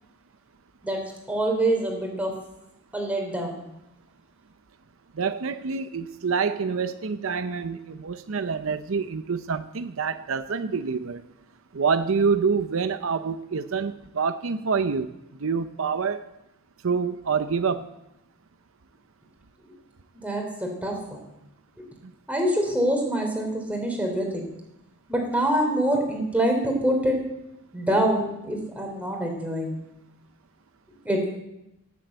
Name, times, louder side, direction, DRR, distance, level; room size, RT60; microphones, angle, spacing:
voice 1, 1.3-2.3 2.9-3.6 20.2-21.2 21.8-21.9 22.3-24.4 25.1-27.2 27.7-29.7 31.0-31.2, right 1 dB, 5° right, 2 dB, 3.2 m, -25 dB
voice 2, 5.1-11.2 11.7-15.1 15.4-16.3 16.8-17.9 22.0-22.1, right 5 dB, 75° right, 11 dB, 0.6 m, -27 dB
17.5 x 7.7 x 7.9 m, 0.88 s
head